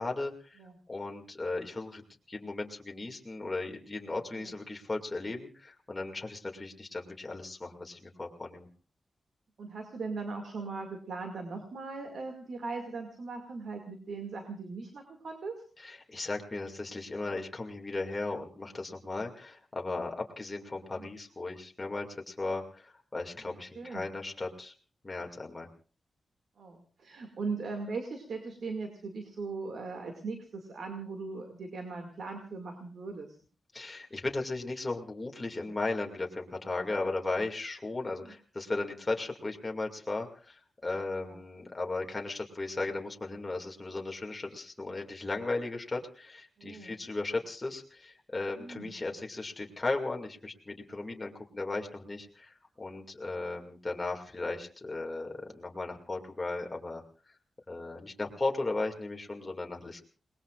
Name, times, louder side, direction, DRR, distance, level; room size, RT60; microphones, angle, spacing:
voice 1, 0.0-0.6 0.9-8.7 15.8-24.7 25.0-25.7 33.7-57.0 57.7-60.0, left 2 dB, 25° left, 1 dB, 2.3 m, -36 dB
voice 2, 9.6-15.6 21.0-21.1 23.4-24.1 26.6-33.3 38.1-38.3 41.2-41.4 46.6-46.9 48.6-48.9, right 4 dB, 75° right, 4 dB, 2.2 m, -39 dB
29.5 x 20.0 x 2.5 m, 0.39 s
wide cardioid pair, 135°, 0 cm